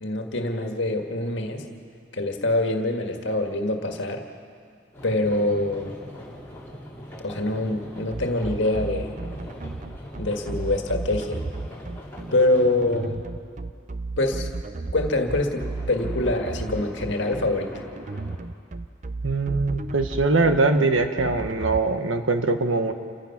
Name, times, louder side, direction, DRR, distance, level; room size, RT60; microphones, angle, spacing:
voice 1, 0.0-1.6 2.1-4.2 5.0-6.0 7.2-9.1 10.2-11.4 12.3-13.2 14.2-14.5 14.9-17.8, left 2 dB, 70° left, 3 dB, 1.9 m, -25 dB
sound 1, 4.9-13.1 15.3-18.4, equal, 10° left, 2.9 m, -42 dB
sound 2, 8.1-21.8, right 3 dB, 35° right, 0.5 m, -33 dB
voice 2, 19.2-22.9, right 3 dB, 80° right, 7 dB, 1.3 m, -22 dB
28.5 x 15.5 x 6.0 m, 2.3 s
head